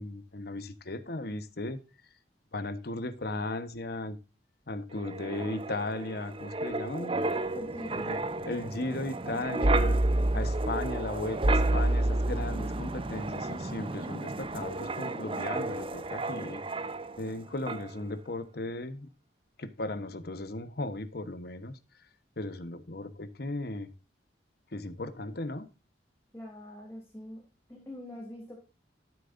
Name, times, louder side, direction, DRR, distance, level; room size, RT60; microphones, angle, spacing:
voice 1, 0.0-1.8 2.5-4.2 4.7-7.1 7.9-8.2 8.4-10.0 10.3-16.6 17.2-19.1 19.6-21.8 22.4-23.9 24.7-25.7, left 2 dB, 55° left, 1.1 m, -36 dB
Wind, 5.0-17.4 17.7-17.9, right 2 dB, 30° right, 0.6 m, -30 dB
voice 2, 7.5-8.1 26.3-27.4 27.7-28.5, left 1 dB, 15° left, 3.1 m, -44 dB
13.0 x 7.6 x 2.6 m
head